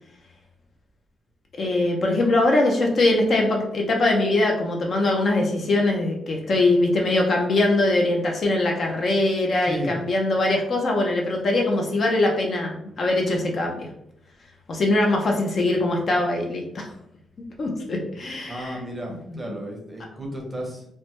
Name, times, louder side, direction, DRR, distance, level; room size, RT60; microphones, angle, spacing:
voice 1, 1.6-13.9 14.7-16.9 17.6-18.8 19.4-19.5, left 2 dB, 45° left, 1 dB, 0.5 m, -22 dB
voice 2, 9.6-9.9 18.5-20.9, equal, 10° right, 0 dB, 0.7 m, -33 dB
3.2 x 2.0 x 2.9 m, 0.75 s
cardioid pair, 130°, 0 cm